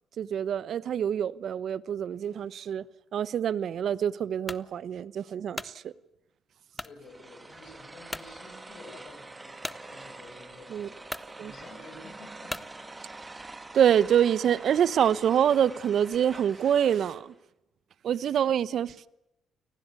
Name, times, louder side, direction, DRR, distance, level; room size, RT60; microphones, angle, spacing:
voice 1, 0.2-2.8 3.1-5.9 10.7-10.9 11.4-11.5 13.7-17.3 18.0-19.1, right 9 dB, 65° right, 0.9 m, -26 dB
sound 1, 4.5-4.7 5.3-5.8 6.7-7.0 7.5-7.6 8.1-8.3 9.6-9.8 10.6-10.7 11.1-11.3 12.5-12.7, left 1 dB, 10° left, 1.0 m, -37 dB
voice 2, 6.8-10.9 11.3-12.7, left 2 dB, 60° left, 8.0 m, -50 dB
sound 2, 7.0-17.3, right 2 dB, 20° right, 2.4 m, -46 dB
29.0 x 19.5 x 8.3 m
cardioid pair, 90°, 0 cm